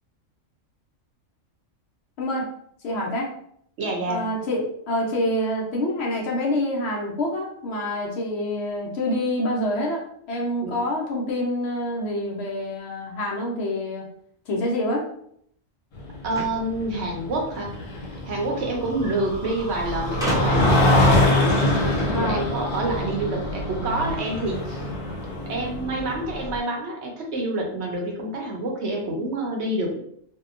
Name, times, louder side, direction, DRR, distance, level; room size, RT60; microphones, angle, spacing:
voice 1, 2.2-2.5 2.8-3.3 4.1-10.0 10.3-14.1 14.5-15.1 22.1-22.4, left 1 dB, 65° left, -2 dB, 0.8 m, -26 dB
voice 2, 3.8-4.4 10.6-10.8 16.2-17.7 18.3-24.9 25.5-30.0, right 2 dB, 65° right, 0 dB, 0.8 m, -28 dB
sound 1, 16.0-26.6, left 1 dB, 85° left, 1.2 m, -24 dB
sound 2, 16.3-17.7 18.8-18.9 19.1-19.2 20.2-20.8, equal, 5° right, 0.5 m, -31 dB
2.7 x 2.2 x 2.4 m, 0.68 s
omnidirectional pair, 1.3 m